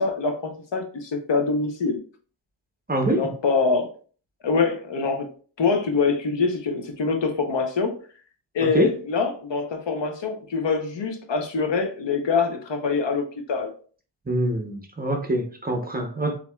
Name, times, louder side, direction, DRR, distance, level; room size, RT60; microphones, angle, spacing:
voice 1, 0.0-2.0 3.1-3.9 4.4-5.3 5.6-7.9 8.5-13.7, left 4 dB, 80° left, 5 dB, 0.9 m, -24 dB
voice 2, 2.9-3.4 8.6-8.9 14.3-16.4, right 1 dB, 20° right, 4 dB, 0.7 m, -25 dB
7.2 x 2.8 x 2.3 m, 0.41 s
wide cardioid pair, 140°, 43 cm